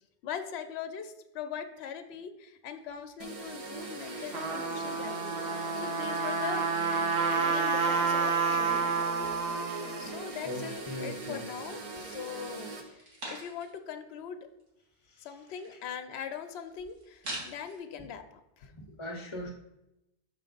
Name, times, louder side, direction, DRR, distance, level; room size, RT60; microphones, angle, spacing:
voice 1, 0.2-6.6 7.5-8.8 10.0-12.7 13.3-14.5 15.2-18.7, left 8 dB, 65° left, 6 dB, 0.8 m, -41 dB
sound 1, 3.2-12.8, right 2 dB, 35° right, 0.7 m, -41 dB
Trumpet, 4.1-10.0, right 5 dB, 65° right, 1.1 m, -29 dB
sound 2, 9.7-11.0 11.4-12.1 12.6-13.9 14.2-14.3 14.5-17.8, right 1 dB, 90° right, 2.1 m, -46 dB
voice 2, 10.4-11.4 12.1-12.3 15.1-15.3 18.7-19.5, left 1 dB, 30° left, 0 dB, 0.7 m, -40 dB
5.9 x 4.7 x 3.9 m, 0.89 s
omnidirectional pair, 1.2 m